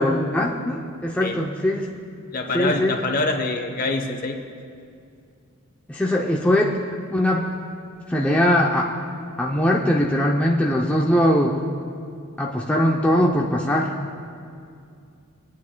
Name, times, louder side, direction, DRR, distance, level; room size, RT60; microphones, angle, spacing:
voice 1, 0.0-1.9 2.5-3.0 5.9-6.8 7.1-7.5 8.1-8.9 9.4-11.6 12.4-13.9, left 1 dB, 5° left, -3 dB, 0.5 m, -21 dB
voice 2, 2.3-4.4, left 2 dB, 40° left, 3 dB, 0.9 m, -25 dB
25.5 x 9.3 x 2.2 m, 2.4 s
head